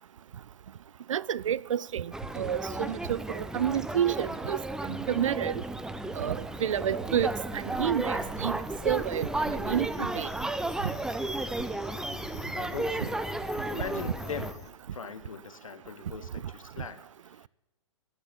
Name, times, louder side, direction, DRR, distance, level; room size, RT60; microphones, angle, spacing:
voice 1, 1.1-4.6 4.9-5.5 6.2-8.6 8.8-10.3 13.0-13.1, right 9 dB, 75° right, 0.5 m, -30 dB
sound 1, 2.1-14.5, right 2 dB, 5° right, 0.5 m, -34 dB
sound 2, 7.0-14.7, left 7 dB, 20° left, 1.6 m, -50 dB
voice 2, 12.5-13.1 13.7-14.6 14.9-17.5, left 6 dB, 80° left, 1.3 m, -40 dB
20.0 x 6.6 x 8.8 m
hypercardioid pair, 120°, 17 cm